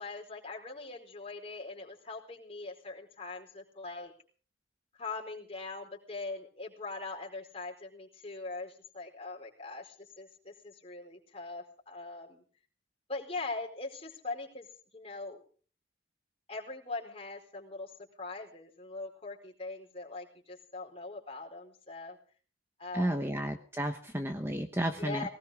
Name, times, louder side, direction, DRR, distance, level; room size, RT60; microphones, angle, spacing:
voice 1, 0.0-4.1 5.0-12.4 13.1-14.7 14.9-15.4 16.5-22.2 22.8-23.4 25.0-25.3, left 3 dB, 30° left, 1 dB, 4.5 m, -41 dB
voice 2, 22.9-25.3, right 1 dB, 10° right, 5 dB, 1.1 m, -32 dB
20.0 x 19.0 x 3.7 m, 0.42 s
head